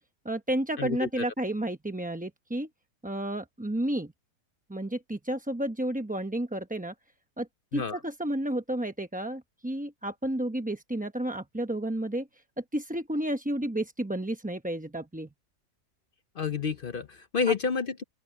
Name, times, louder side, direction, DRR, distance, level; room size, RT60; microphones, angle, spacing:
voice 1, 0.2-2.7 3.0-4.1 4.7-6.9 7.4-12.3 12.6-15.3 17.5-17.6, right 1 dB, 10° right, 0.4 m, -31 dB
voice 2, 0.8-1.1 7.7-8.0 16.4-18.0, left 6 dB, 55° left, 0.6 m, -29 dB
open air
omnidirectional pair, 1.7 m